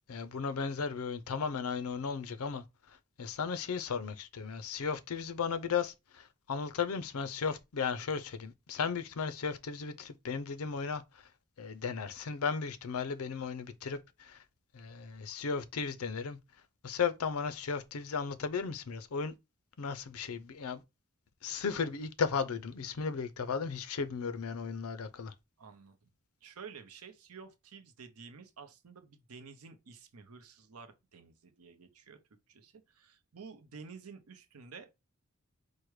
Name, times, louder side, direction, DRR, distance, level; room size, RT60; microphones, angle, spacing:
voice 1, 0.1-2.6 3.2-11.0 11.6-14.4 14.7-16.4 16.8-19.3 19.8-20.8 21.4-25.3, left 5 dB, 75° left, 0.5 m, -35 dB
voice 2, 25.6-26.1 26.4-32.2 32.5-35.0, right 5 dB, 80° right, 0.7 m, -51 dB
4.6 x 2.1 x 4.7 m
head